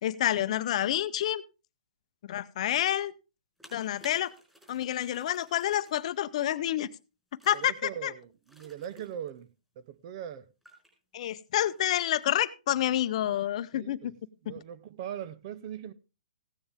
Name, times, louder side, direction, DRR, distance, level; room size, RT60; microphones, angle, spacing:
voice 1, 0.0-1.4 2.3-3.1 3.7-4.3 4.7-6.9 7.5-7.7 8.0-8.1 11.1-14.1 14.5-14.6, left 12 dB, 45° left, 0.7 m, -28 dB
sound 1, 3.6-6.2 7.4-7.7 8.4-9.4 10.6-10.9 11.7-12.2, right 1 dB, 5° right, 4.7 m, -56 dB
voice 2, 7.5-9.5 9.8-10.5 13.7-14.1 14.4-15.9, right 10 dB, 40° right, 0.7 m, -40 dB
15.5 x 9.6 x 3.5 m
hypercardioid pair, 150°, 5 cm